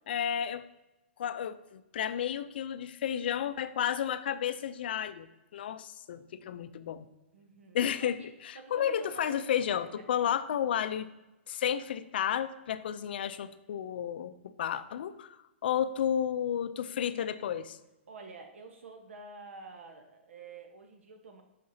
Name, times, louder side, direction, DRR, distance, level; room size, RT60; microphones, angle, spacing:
voice 1, 0.1-0.7 1.2-7.1 7.7-8.2 8.4-11.1 11.5-17.8, left 9 dB, 50° left, 12 dB, 0.4 m, -32 dB
voice 2, 7.3-8.3 8.5-9.4 18.1-21.4, right 4 dB, 85° right, 4 dB, 1.0 m, -48 dB
6.5 x 5.8 x 2.7 m, 1.0 s
hypercardioid pair, 170°, 7 cm